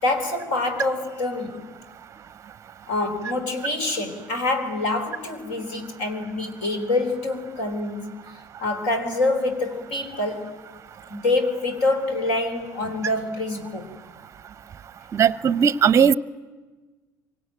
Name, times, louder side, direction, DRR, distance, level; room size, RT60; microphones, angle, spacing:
voice 1, 0.0-1.7 2.9-8.2 8.6-10.6 11.1-13.9, left 2 dB, 60° left, 3.9 m, -26 dB
voice 2, 15.1-16.1, right 7 dB, 30° right, 0.8 m, -17 dB
26.0 x 24.5 x 9.4 m
figure-of-eight pair, 65°, 10 cm